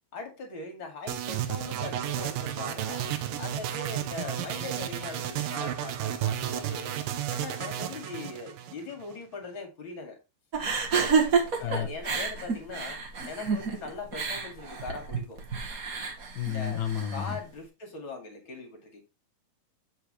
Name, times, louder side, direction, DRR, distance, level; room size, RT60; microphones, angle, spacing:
voice 1, 0.1-3.1 3.4-7.0 7.3-10.2 11.6-13.0 13.3-15.4 16.5-16.8 17.1-19.0, left 3 dB, 40° left, 2.7 m, -40 dB
sound 1, 1.1-9.2, right 11 dB, 85° right, 2.5 m, -32 dB
sound 2, 10.5-17.4, right 5 dB, 45° right, 1.2 m, -29 dB
voice 2, 16.3-17.4, left 9 dB, 70° left, 1.1 m, -31 dB
7.9 x 6.8 x 3.1 m
omnidirectional pair, 3.9 m